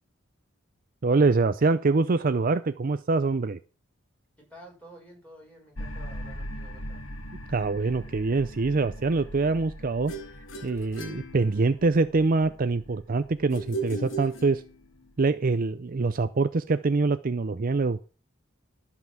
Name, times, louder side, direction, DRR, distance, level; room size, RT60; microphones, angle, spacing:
voice 1, 1.0-3.6 7.5-10.1 10.6-14.6 15.2-18.0, right 3 dB, 45° right, 12 dB, 0.5 m, -24 dB
voice 2, 4.4-7.0, right 1 dB, 10° left, -1 dB, 6.2 m, -50 dB
sound 1, 5.7-15.1, equal, 85° left, 2.2 m, -42 dB
sound 2, 10.1-12.0 13.5-15.0, right 3 dB, 65° left, 2.2 m, -37 dB
13.0 x 5.8 x 7.3 m, 0.36 s
head